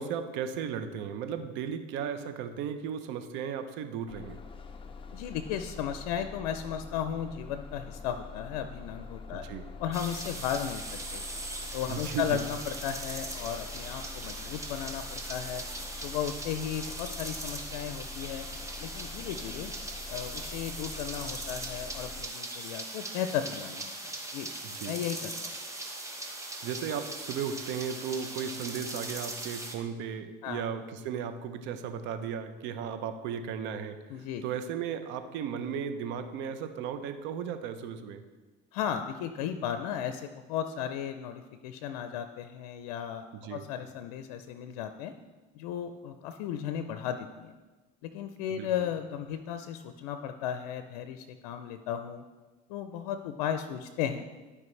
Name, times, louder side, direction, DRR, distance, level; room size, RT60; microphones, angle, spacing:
voice 1, 0.0-4.4 9.3-9.7 11.9-12.4 24.6-25.0 26.6-34.0 34.4-38.2 43.4-43.6 48.6-48.9, right 7 dB, 70° right, 9 dB, 0.8 m, -35 dB
Bus, 4.1-22.3, left 4 dB, 25° left, 0.6 m, -45 dB
voice 2, 5.1-9.5 9.8-10.9 11.1-11.2 11.7-15.6 15.9-18.5 18.8-19.7 20.1-24.5 24.9-25.6 30.4-30.6 34.1-34.4 38.7-45.1 45.5-47.6 48.0-52.2 52.7-54.3, left 9 dB, 90° left, 9 dB, 0.5 m, -35 dB
sound 1, 9.9-29.7, right 2 dB, 15° right, 1.1 m, -40 dB
12.0 x 4.9 x 3.2 m, 1.2 s
supercardioid pair, 105°, 20 cm